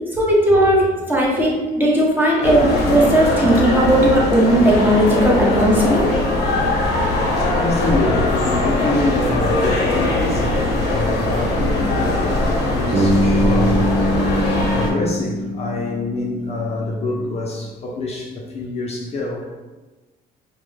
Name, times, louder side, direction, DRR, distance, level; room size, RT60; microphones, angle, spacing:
voice 1, 0.1-1.5 1.8-6.0, right 1 dB, 10° right, -4 dB, 0.6 m, -16 dB
sound 1, 2.4-14.9, left 2 dB, 80° left, 0.6 m, -20 dB
voice 2, 5.3-6.0 7.5-12.3 12.7-13.9 14.7-19.5, left 2 dB, 40° left, -2 dB, 0.4 m, -26 dB
Bass guitar, 12.9-16.9, equal, 80° right, 0.8 m, -22 dB
2.2 x 2.1 x 3.1 m, 1.2 s
cardioid pair, 110°, 17 cm